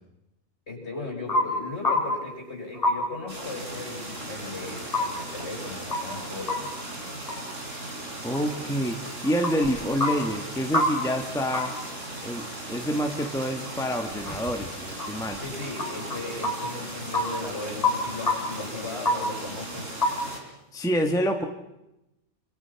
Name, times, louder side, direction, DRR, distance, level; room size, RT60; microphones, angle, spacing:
voice 1, 0.7-6.7 15.4-19.9, left 3 dB, 50° left, 0 dB, 7.1 m, -37 dB
sound 1, 1.3-1.4 1.8-2.2 2.7-2.9 4.9-5.0 5.4-5.5 5.9-6.6 7.3-7.4 8.3-8.4 9.2-9.7 10.0-10.1 10.7-10.9 11.5-11.7 13.2-13.3 13.6-13.7 14.1-14.6 15.0-15.4 15.8-16.2 16.4-16.5 17.1-17.3 17.6-18.3 18.8-19.1 20.0-20.1, left 2 dB, 25° left, 3.4 m, -25 dB
sound 2, 3.3-20.4, right 1 dB, 60° right, 4.6 m, -37 dB
voice 2, 8.2-11.7 12.2-15.4 20.7-21.4, equal, 5° left, 3 dB, 1.4 m, -27 dB
27.5 x 26.0 x 5.8 m, 0.92 s
omnidirectional pair, 1.4 m